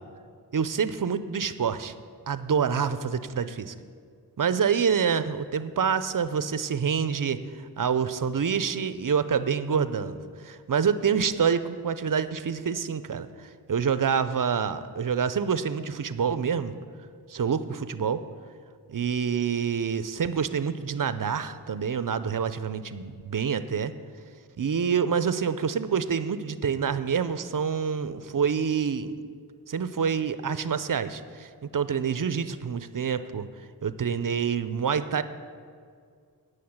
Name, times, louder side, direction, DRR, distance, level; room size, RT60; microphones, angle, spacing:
voice 1, 0.5-1.9 2.3-3.7 4.4-16.7 17.3-18.2 18.9-23.9 24.6-29.1 29.7-33.5 33.8-35.2, right 6 dB, 55° right, 13 dB, 0.6 m, -27 dB
9.5 x 6.4 x 8.7 m, 2.1 s
wide cardioid pair, 50°, 39 cm